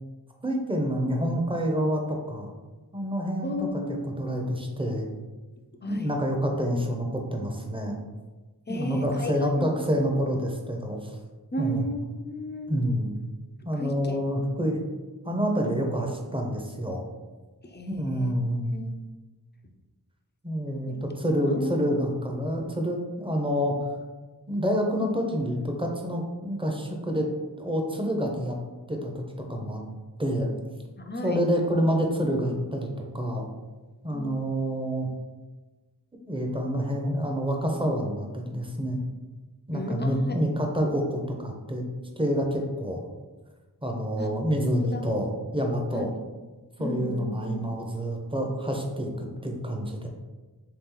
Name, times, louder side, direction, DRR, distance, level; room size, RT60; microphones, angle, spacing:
voice 1, 0.4-2.5 2.9-3.7 4.1-5.1 5.8-8.0 8.7-11.2 11.6-11.8 12.7-13.1 13.6-14.8 15.2-17.0 17.9-18.7 20.4-23.9 24.5-27.3 27.6-28.6 28.9-29.2 29.5-29.8 30.2-30.5 31.2-32.9 33.1-33.4 34.0-35.1 36.3-39.0 39.7-41.8 42.2-43.0 43.8-46.1 46.8-50.1, equal, 15° right, 1 dB, 0.6 m, -27 dB
voice 2, 3.4-4.1 5.8-6.1 8.7-10.1 11.5-12.7 13.8-14.2 17.6-18.3 18.7-18.9 21.5-21.8 31.0-31.4 34.1-34.4 39.7-40.4 44.2-44.3 44.6-45.2 45.9-46.1 46.8-47.6, equal, 30° left, 4 dB, 0.4 m, -34 dB
3.5 x 3.0 x 3.7 m, 1.2 s
wide cardioid pair, 55°, 39 cm